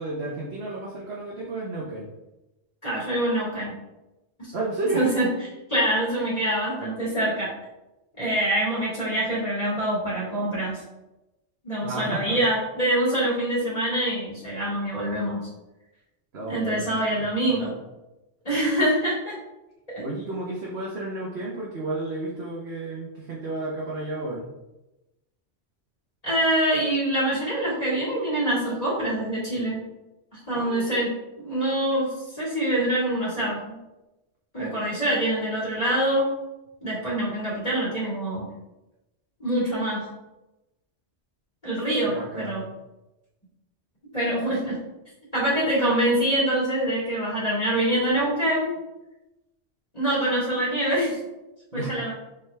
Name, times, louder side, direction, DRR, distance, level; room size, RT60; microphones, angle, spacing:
voice 1, 0.0-2.1 4.5-5.1 11.8-12.4 16.3-17.7 20.0-24.5 30.5-31.0 42.0-42.7 51.7-52.1, right 2 dB, 65° right, -5 dB, 1.4 m, -32 dB
voice 2, 2.8-3.7 4.4-4.5 4.9-5.3 5.7-7.5 8.2-10.8 11.6-15.5 16.5-17.7 18.4-19.4 19.9-20.0 26.2-29.8 30.3-31.1 31.4-33.7 34.5-36.3 36.8-38.5 39.4-40.0 41.6-42.6 44.1-44.8 45.3-48.7 49.9-51.2 51.7-52.1, right 1 dB, 35° left, -7 dB, 2.4 m, -25 dB
6.9 x 4.1 x 3.4 m, 0.98 s
omnidirectional pair, 1.2 m